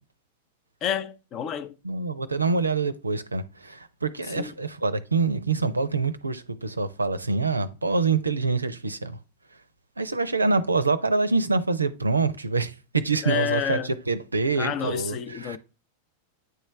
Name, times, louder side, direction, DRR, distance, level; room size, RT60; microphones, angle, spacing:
voice 1, 0.8-1.8 4.4-4.5 13.2-13.9 14.6-15.6, left 9 dB, 35° left, 0.6 m, -29 dB
voice 2, 1.8-9.2 10.0-15.6, right 4 dB, 80° right, 0.5 m, -26 dB
9.0 x 3.2 x 3.3 m
figure-of-eight pair, 90°, 0 cm